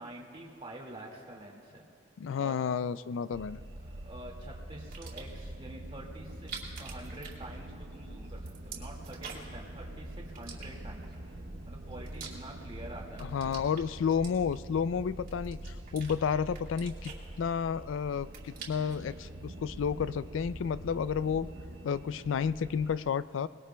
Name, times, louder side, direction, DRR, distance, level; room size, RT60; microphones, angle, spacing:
voice 1, 0.0-1.8 2.4-2.5 4.0-11.1 11.3-13.6, right 1 dB, 30° right, -1 dB, 2.1 m, -47 dB
voice 2, 2.2-3.6 13.2-21.5 21.8-23.5, left 6 dB, 80° left, 16 dB, 0.3 m, -31 dB
sound 1, 3.3-23.0, right 1 dB, 65° right, 0.9 m, -45 dB
sound 2, 4.9-5.5 6.3-8.0 8.2-9.6 10.3-11.2 11.7-12.8 13.1-14.8 15.3-16.2 16.5-17.8 18.1-19.0, right 6 dB, 50° right, 2.5 m, -46 dB
29.5 x 20.0 x 2.3 m, 2.6 s
head